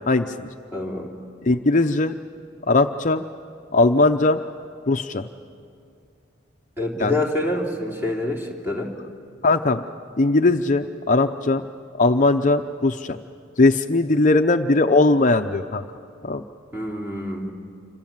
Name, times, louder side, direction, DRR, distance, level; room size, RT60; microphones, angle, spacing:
voice 1, 0.1-0.4 1.4-2.1 2.7-3.3 3.7-4.4 4.9-5.3 7.0-7.1 9.4-9.8 10.2-11.7 12.0-13.2 13.6-15.8 16.2-16.4, left 2 dB, 40° left, 7 dB, 0.6 m, -19 dB
voice 2, 0.7-1.1 6.8-8.9 16.7-17.5, left 1 dB, 10° right, 0 dB, 3.3 m, -26 dB
27.5 x 26.0 x 7.4 m, 2.5 s
head